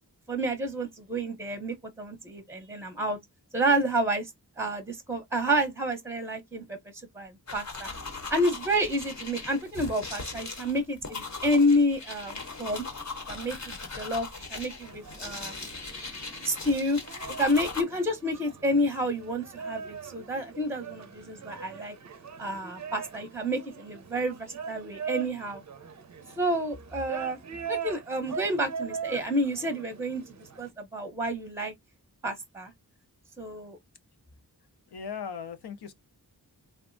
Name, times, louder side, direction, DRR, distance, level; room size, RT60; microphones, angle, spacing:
voice 1, 0.3-3.2 3.5-4.3 4.6-6.8 7.1-7.9 8.3-12.8 13.3-15.6 16.4-17.0 17.4-21.9 22.4-25.6 26.4-27.4 27.7-31.7 32.2-32.7 33.4-33.8, equal, 5° right, 0.7 m, -29 dB
sound 1, 7.5-17.8, left 3 dB, 45° left, 0.8 m, -39 dB
sound 2, 14.8-30.7, right 6 dB, 45° right, 0.5 m, -41 dB
voice 2, 34.9-35.9, left 6 dB, 80° left, 0.6 m, -38 dB
3.4 x 2.1 x 2.5 m
wide cardioid pair, 75°, 39 cm